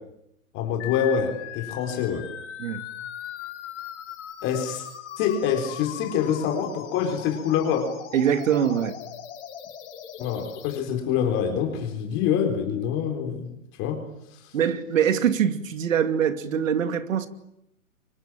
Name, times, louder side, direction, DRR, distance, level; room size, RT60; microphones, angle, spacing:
voice 1, 0.5-2.3 4.4-4.9 5.2-7.9 10.2-13.5 13.8-14.0, left 8 dB, 30° left, 4.1 m, -26 dB
sound 1, 0.8-10.8, left 10 dB, 55° left, 4.6 m, -39 dB
voice 2, 8.1-9.0 14.5-17.3, right 8 dB, 70° right, 2.7 m, -23 dB
25.5 x 25.0 x 9.0 m
hypercardioid pair, 145°, 41 cm